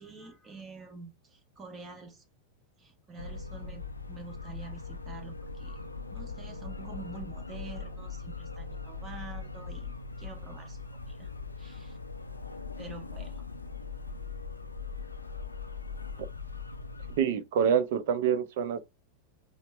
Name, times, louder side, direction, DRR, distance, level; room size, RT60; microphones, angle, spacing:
voice 1, 0.0-2.2 2.8-5.8 6.1-11.3 11.6-12.0 12.8-13.4 17.6-17.7, right 4 dB, 20° right, 1.0 m, -47 dB
sound 1, 3.2-17.2, left 4 dB, 80° left, 0.4 m, -40 dB
voice 2, 17.2-18.8, right 8 dB, 55° right, 0.4 m, -26 dB
4.2 x 2.1 x 3.0 m
figure-of-eight pair, 90°, 0 cm